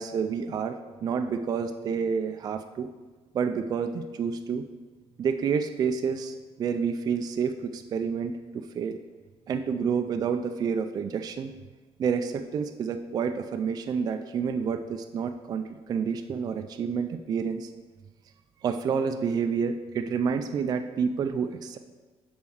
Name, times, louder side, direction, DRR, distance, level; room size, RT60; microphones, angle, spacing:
voice 1, 0.0-2.9 3.3-4.7 5.2-9.0 9.5-11.5 12.0-17.7 18.6-21.8, right 6 dB, 35° right, 7 dB, 0.4 m, -29 dB
7.0 x 4.3 x 6.2 m, 1.3 s
cardioid pair, 155°, 11 cm